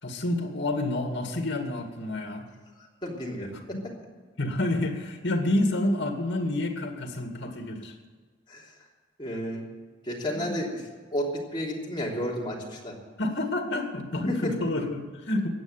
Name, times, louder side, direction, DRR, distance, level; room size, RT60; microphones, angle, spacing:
voice 1, 0.0-2.5 4.4-7.9 10.3-10.6 13.2-15.5, left 1 dB, 75° left, 4 dB, 2.1 m, -29 dB
voice 2, 2.8-3.5 8.5-8.7 9.2-9.7 10.0-10.8 11.1-12.9 14.3-14.5, equal, 25° left, -3 dB, 3.2 m, -32 dB
15.5 x 9.0 x 8.9 m, 1.5 s
head